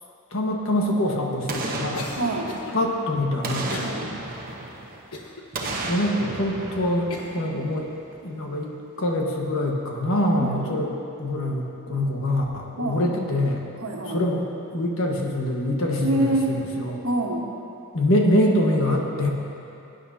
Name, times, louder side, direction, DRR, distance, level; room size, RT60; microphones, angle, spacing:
voice 1, 0.3-2.1 2.7-3.8 5.8-7.9 8.2-8.7 9.0-10.9 11.2-13.6 14.0-14.4 14.7-17.0 17.9-19.3, left 1 dB, 65° left, 0 dB, 1.4 m, -24 dB
Boom, 1.5-3.0 3.4-5.1 5.5-7.8 8.1-8.2, right 2 dB, 40° right, 1.0 m, -33 dB
Cough, 1.9-2.8 3.7-4.0 4.5-4.6 5.1-5.8 6.4-6.5 7.1-7.4, left 2 dB, 80° left, 1.1 m, -37 dB
voice 2, 2.2-2.5 3.8-4.1 10.4-10.6 12.8-13.1 13.8-14.2 16.0-16.5 17.0-17.4, right 1 dB, 65° right, -1 dB, 1.4 m, -25 dB
18.5 x 10.0 x 2.8 m, 2.8 s
head